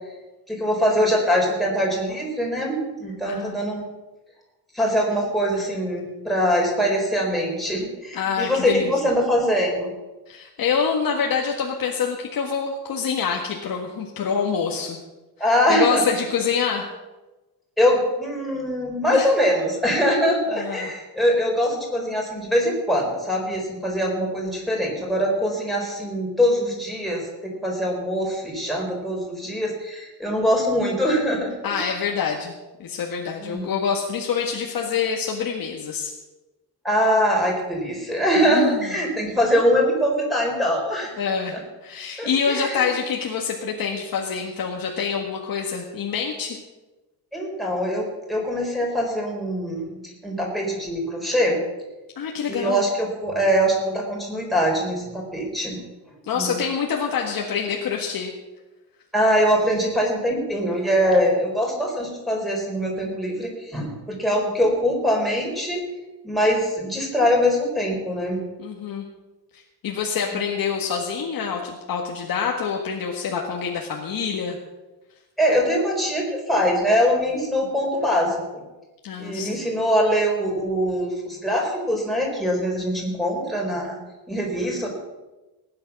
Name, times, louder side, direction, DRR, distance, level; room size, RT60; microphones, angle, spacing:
voice 1, 0.5-3.8 4.7-9.9 15.4-16.0 17.8-31.5 33.4-33.6 36.8-41.1 41.5-41.6 42.2-42.9 47.3-51.6 52.5-55.8 56.3-56.5 59.1-65.8 66.2-68.4 70.3-70.4 75.4-78.6 79.2-84.0 84.3-84.9, equal, ahead, -2 dB, 4.2 m, -23 dB
voice 2, 3.2-3.6 8.1-8.9 10.3-15.0 15.7-16.9 19.1-19.3 20.5-20.9 31.6-32.5 32.8-36.1 38.5-38.9 41.2-41.6 41.8-46.6 52.2-52.8 56.3-58.3 68.6-69.1 69.8-74.6 79.0-79.6, left 6 dB, 60° left, 0 dB, 1.7 m, -26 dB
18.5 x 9.7 x 6.0 m, 1.1 s
cardioid pair, 155°, 39 cm